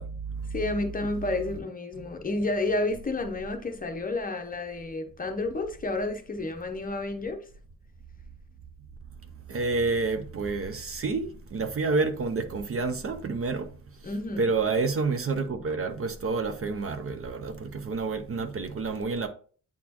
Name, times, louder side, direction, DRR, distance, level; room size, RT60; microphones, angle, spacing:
voice 1, 0.0-0.5 9.5-13.7 14.0-14.1 14.4-19.3, right 4 dB, 40° right, 0.5 m, -29 dB
voice 2, 0.5-7.5 14.0-14.5, left 2 dB, 25° left, 0.7 m, -30 dB
8.5 x 4.1 x 2.9 m
wide cardioid pair, 165°, 35 cm